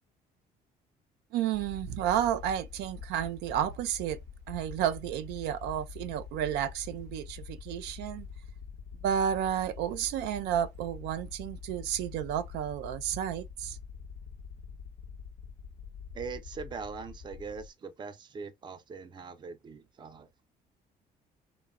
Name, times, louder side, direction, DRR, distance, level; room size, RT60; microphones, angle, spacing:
voice 1, 1.3-4.2 4.5-8.3 9.0-13.8, right 10 dB, 90° right, 0.4 m, -31 dB
sound 1, 1.5-17.7, left 6 dB, 70° left, 0.7 m, -45 dB
voice 2, 16.1-20.3, right 5 dB, 25° right, 0.4 m, -41 dB
3.0 x 2.1 x 2.3 m
cardioid pair, 110°, 17 cm